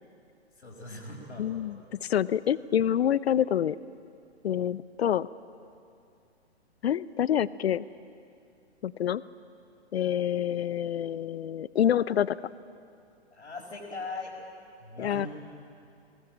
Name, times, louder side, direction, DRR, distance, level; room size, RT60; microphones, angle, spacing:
voice 1, 0.6-1.9 13.3-14.3 14.8-15.3, left 3 dB, 85° left, -5 dB, 4.9 m, -40 dB
voice 2, 1.4-3.8 4.4-5.3 6.8-7.8 8.8-9.2 9.9-12.4 15.0-15.3, left 10 dB, 65° left, 18 dB, 0.8 m, -27 dB
24.0 x 19.5 x 8.8 m, 2.6 s
hypercardioid pair, 125°, 34 cm